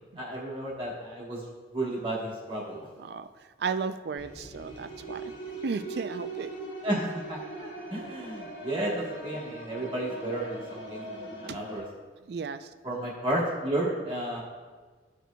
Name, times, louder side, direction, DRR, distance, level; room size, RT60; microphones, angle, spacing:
voice 1, 0.2-1.4 1.7-2.9 6.8-11.8 12.8-14.4, right 1 dB, 25° right, -6 dB, 1.3 m, -32 dB
voice 2, 3.6-5.3 5.6-6.6 8.0-8.1 11.5-11.6 12.3-12.7, right 5 dB, 55° right, 10 dB, 0.3 m, -34 dB
sound 1, 4.2-11.8, right 2 dB, 75° left, 2.0 m, -40 dB
13.5 x 5.1 x 2.3 m, 1.4 s
head